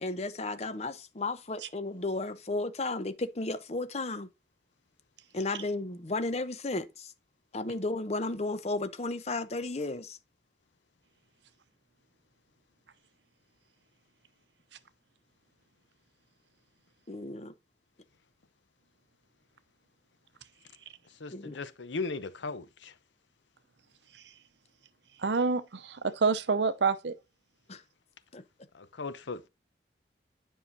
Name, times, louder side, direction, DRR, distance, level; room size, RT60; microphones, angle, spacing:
voice 1, 0.0-4.3 5.3-7.1 7.5-10.2 17.1-17.5 21.3-21.6 27.7-27.8 28.3-28.4, left 2 dB, 35° left, 0.8 m, -34 dB
voice 2, 21.2-22.9 28.7-29.5, left 3 dB, 85° left, 0.8 m, -37 dB
voice 3, 25.2-27.2, right 4 dB, 70° right, 0.7 m, -28 dB
9.8 x 5.5 x 2.7 m
head